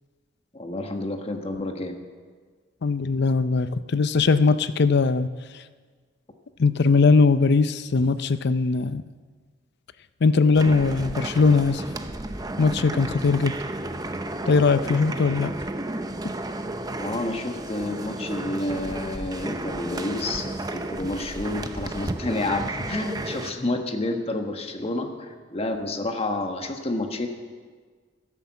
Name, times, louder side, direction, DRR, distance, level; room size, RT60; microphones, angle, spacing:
voice 1, 0.5-1.9 17.0-27.3, left 2 dB, 30° left, 4 dB, 1.3 m, -29 dB
voice 2, 2.8-5.3 6.6-9.0 10.2-11.8 12.6-13.5 14.5-15.5, left 4 dB, 60° left, 13 dB, 0.5 m, -20 dB
sound 1, 10.5-23.5, right 2 dB, 20° right, 0.7 m, -33 dB
13.0 x 11.0 x 7.2 m, 1.6 s
head